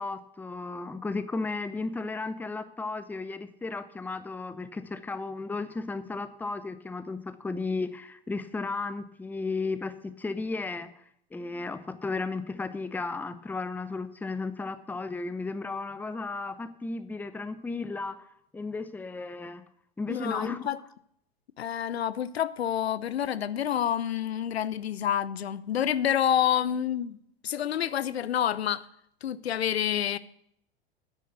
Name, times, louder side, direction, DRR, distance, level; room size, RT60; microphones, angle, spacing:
voice 1, 0.0-10.9 11.3-18.2 18.5-19.6 20.0-20.7, left 3 dB, 5° left, 0.6 m, -34 dB
voice 2, 20.1-20.8 21.6-27.2 27.4-28.8 29.2-30.2, left 10 dB, 80° left, 0.6 m, -28 dB
9.9 x 8.4 x 6.6 m
hypercardioid pair, 95°, 31 cm